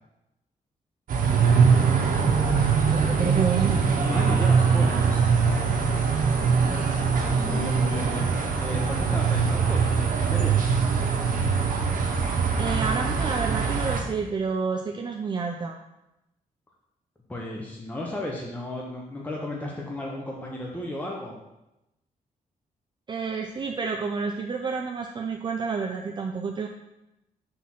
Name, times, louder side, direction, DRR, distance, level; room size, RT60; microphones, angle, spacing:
sound 1, 1.1-14.0, right 5 dB, 70° right, 1.0 m, -22 dB
voice 1, 2.9-3.9 12.6-15.8 23.1-26.7, right 5 dB, 30° right, 2 dB, 0.4 m, -29 dB
voice 2, 4.0-5.2 7.2-10.7 17.3-21.3, left 1 dB, 10° left, -2 dB, 0.8 m, -34 dB
6.2 x 3.6 x 5.9 m, 0.92 s
wide cardioid pair, 140°, 15 cm